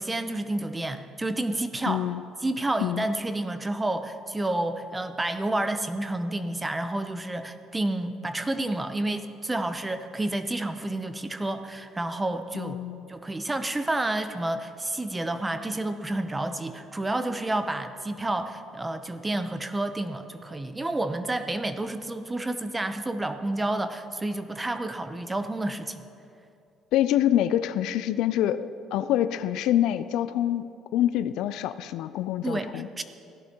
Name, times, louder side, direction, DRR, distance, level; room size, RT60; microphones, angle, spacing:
voice 1, 0.0-2.0 2.4-12.8 13.1-26.0 32.4-33.0, right 2 dB, 15° right, 10 dB, 0.7 m, -30 dB
voice 2, 1.9-2.2 2.8-3.1 12.5-13.1 26.9-32.9, left 12 dB, 75° left, 13 dB, 0.4 m, -26 dB
16.5 x 11.0 x 2.9 m, 2.5 s
supercardioid pair, 85°, 0 cm